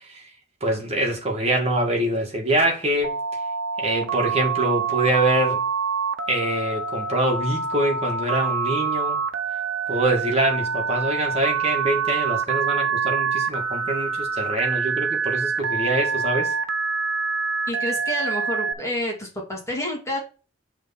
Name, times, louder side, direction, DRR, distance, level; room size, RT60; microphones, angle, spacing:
voice 1, 0.6-3.2 3.8-5.6 6.3-9.2 9.9-16.6, right 1 dB, 30° right, 2.2 m, -24 dB
Telephone, 3.0-18.7, right 5 dB, 80° right, 1.0 m, -26 dB
voice 2, 17.7-20.2, left 1 dB, 15° left, 2.3 m, -29 dB
7.2 x 3.8 x 5.9 m
head